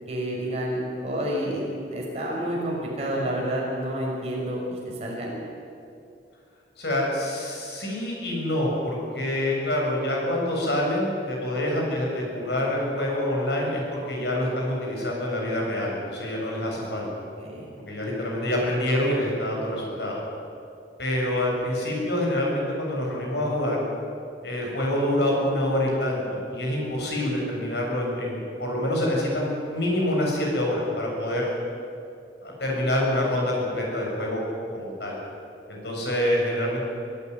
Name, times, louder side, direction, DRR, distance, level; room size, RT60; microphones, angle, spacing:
voice 1, 0.1-1.6 1.9-5.3 17.4-17.7, right 1 dB, 35° right, -3 dB, 6.3 m, -29 dB
voice 2, 6.8-17.1 17.9-20.2 21.0-23.8 24.4-31.5 32.4-34.4 34.7-35.1 35.7-36.9, left 1 dB, 65° left, -2 dB, 7.0 m, -26 dB
24.0 x 14.5 x 9.5 m, 2.5 s
head